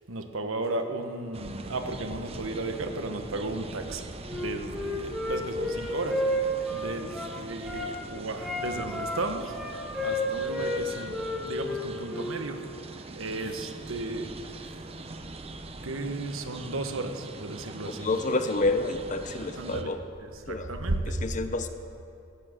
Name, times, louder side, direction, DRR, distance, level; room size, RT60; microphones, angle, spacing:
voice 1, 0.1-11.2 11.4-12.7 13.0-14.9 15.8-18.1 19.6-19.9 20.2-21.2, right 2 dB, 90° right, 6 dB, 1.1 m, -34 dB
sound 1, 1.3-19.8, right 2 dB, 30° right, 0.7 m, -42 dB
Wind instrument woodwind instrument, 4.2-7.9 8.4-10.8 11.1-12.4, left 1 dB, 5° left, 2.1 m, -31 dB
voice 2, 18.0-20.0 20.5-20.7 21.2-21.7, left 2 dB, 40° left, 9 dB, 0.7 m, -28 dB
13.0 x 8.7 x 7.7 m, 2.7 s
head